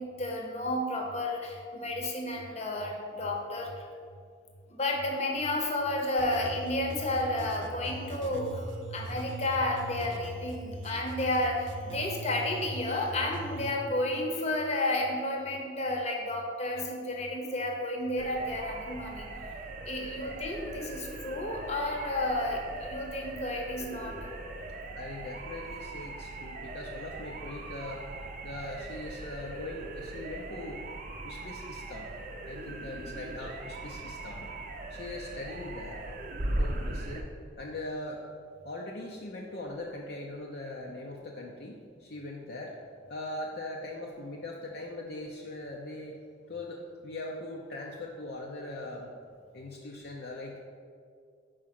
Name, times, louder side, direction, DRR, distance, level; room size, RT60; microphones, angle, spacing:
voice 1, 0.0-3.9 4.7-19.3 19.9-24.1, left 1 dB, 35° left, 1 dB, 0.9 m, -32 dB
sound 1, 6.2-13.7, right 2 dB, 80° right, 0.7 m, -40 dB
sound 2, 18.2-37.2, right 2 dB, 45° right, 0.6 m, -39 dB
voice 2, 25.0-28.0 28.4-30.8 31.2-32.1 32.4-34.5 34.9-36.0 36.6-37.3 37.6-38.2 38.6-42.7 43.1-46.2 46.5-49.1 49.5-50.6, left 2 dB, 55° left, -1 dB, 0.5 m, -40 dB
5.0 x 4.7 x 5.8 m, 2.2 s
head